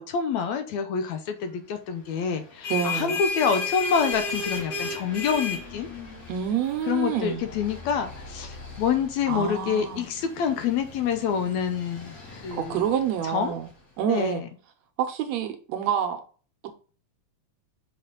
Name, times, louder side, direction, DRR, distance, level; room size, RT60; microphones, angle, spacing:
voice 1, 0.0-5.9 6.9-12.2 12.4-12.8 13.3-13.5 14.1-14.4, left 7 dB, 75° left, 2.0 m, -27 dB
sound 1, 2.4-13.7, left 4 dB, 60° left, 3.3 m, -35 dB
voice 2, 2.7-3.2 6.3-7.4 9.3-10.1 12.5-13.7 14.0-14.4 15.0-16.2, right 9 dB, 75° right, 1.8 m, -27 dB
6.1 x 4.7 x 3.8 m
omnidirectional pair, 3.4 m